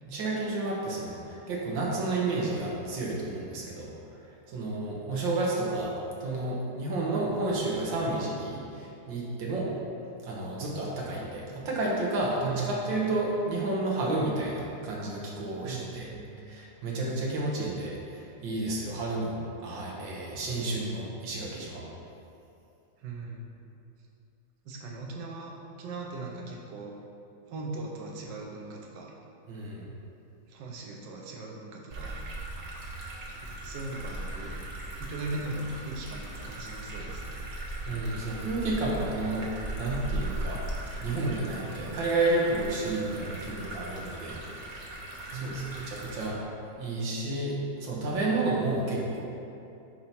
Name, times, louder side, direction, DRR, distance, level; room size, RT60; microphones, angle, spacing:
voice 1, 0.0-3.9 4.5-5.9 6.2-9.7 10.2-16.1 16.4-19.4 19.6-21.8 29.5-29.9 37.9-39.5 39.8-40.6 41.0-44.8 45.3-46.4 46.7-49.2, right 2 dB, 90° right, -4 dB, 1.8 m, -31 dB
voice 2, 12.4-12.9 15.6-16.4 23.0-23.4 24.6-26.9 27.5-29.1 30.5-32.2 33.4-34.6 35.0-37.5 45.3-45.9, right 3 dB, 75° right, -1 dB, 1.5 m, -39 dB
sound 1, 31.9-46.3, right 2 dB, 50° right, 1.0 m, -38 dB
7.6 x 2.8 x 5.7 m, 2.6 s
omnidirectional pair, 2.0 m